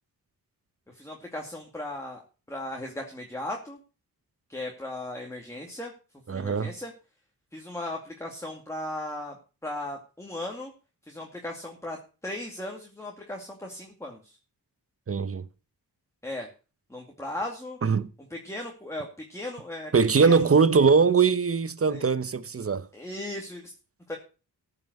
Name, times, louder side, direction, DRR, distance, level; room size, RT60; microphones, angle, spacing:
voice 1, 0.9-2.2 2.5-3.8 4.5-5.9 6.3-6.9 7.5-9.4 9.6-10.7 11.1-14.4 16.2-16.5 16.9-17.8 18.3-19.9 20.2-20.5 20.8-20.9 21.9-22.0 22.9-23.7 24.1-24.2, left 1 dB, 5° left, 2.4 m, -37 dB
voice 2, 6.3-6.8 15.1-15.5 17.8-18.1 19.9-22.9, right 5 dB, 35° right, 0.9 m, -21 dB
14.5 x 5.9 x 6.6 m
cardioid pair, 85°, 39 cm